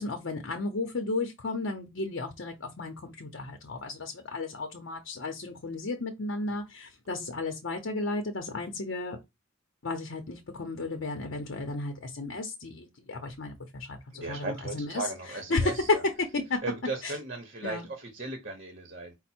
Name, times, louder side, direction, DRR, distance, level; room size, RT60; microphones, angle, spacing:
voice 1, 0.0-9.2 9.8-15.1 15.5-16.6 17.0-17.1 17.6-17.9, left 3 dB, 65° left, 0.7 m, -33 dB
voice 2, 14.1-16.0 16.6-19.1, right 3 dB, 45° right, 1.0 m, -37 dB
5.1 x 2.1 x 4.3 m
head